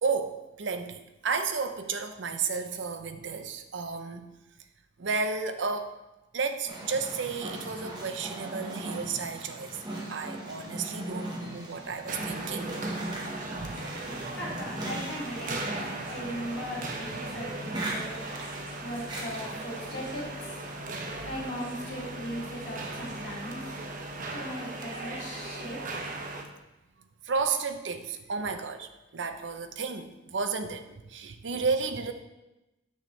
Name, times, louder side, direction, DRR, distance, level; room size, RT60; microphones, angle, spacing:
voice 1, 0.0-4.3 5.0-6.0 6.3-9.8 10.1-12.8 13.6-13.9 20.8-21.5 27.2-32.1, right 5 dB, 75° right, 8 dB, 0.6 m, -32 dB
sound 1, 6.7-20.2, right 1 dB, 25° right, 1.2 m, -39 dB
sound 2, 12.1-26.4, right 2 dB, 45° right, 0.8 m, -38 dB
voice 2, 14.3-18.2 18.8-20.3 21.2-23.6 24.3-25.8, equal, 75° left, -4 dB, 2.4 m, -38 dB
7.6 x 6.4 x 3.2 m, 0.98 s
head